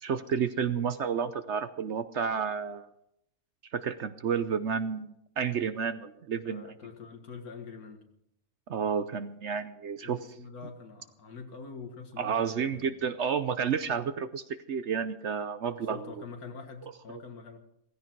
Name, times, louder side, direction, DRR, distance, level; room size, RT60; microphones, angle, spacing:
voice 1, 0.0-2.9 3.7-6.6 8.7-10.2 12.2-16.0, right 7 dB, 60° right, 12 dB, 0.9 m, -31 dB
voice 2, 6.4-8.0 10.0-13.0 15.7-17.6, left 5 dB, 75° left, 5 dB, 2.2 m, -45 dB
16.0 x 15.5 x 4.6 m, 0.79 s
omnidirectional pair, 1.6 m